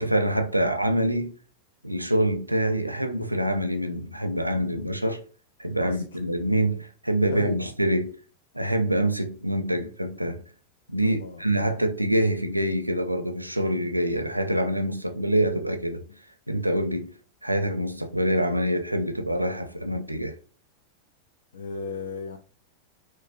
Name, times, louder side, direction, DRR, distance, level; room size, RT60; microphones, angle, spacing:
voice 1, 0.0-1.3 1.8-5.2 5.6-8.2 8.5-10.4 10.9-16.0 16.5-17.1 17.4-20.4, right 1 dB, 85° right, 0.5 m, -25 dB
voice 2, 11.0-11.4 13.7-13.9 16.1-16.2 21.5-22.4, left 4 dB, 65° left, 0.4 m, -36 dB
4.7 x 2.0 x 2.5 m
figure-of-eight pair, 90°, 0 cm